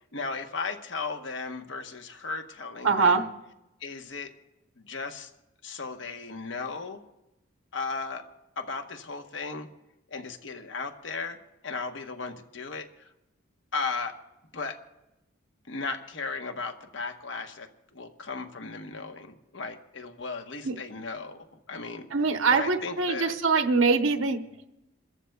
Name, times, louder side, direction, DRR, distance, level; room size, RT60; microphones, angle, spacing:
voice 1, 0.1-3.3 3.8-4.3 4.8-5.3 5.6-7.0 7.7-8.3 8.6-9.7 10.1-11.4 11.6-13.1 13.7-14.2 14.5-14.8 15.7-22.1 22.5-23.3, left 4 dB, 70° left, 6 dB, 1.1 m, -36 dB
voice 2, 2.8-3.3 20.6-20.7 22.1-24.4, right 4 dB, 90° right, 6 dB, 0.9 m, -23 dB
29.0 x 14.0 x 2.3 m, 0.95 s
head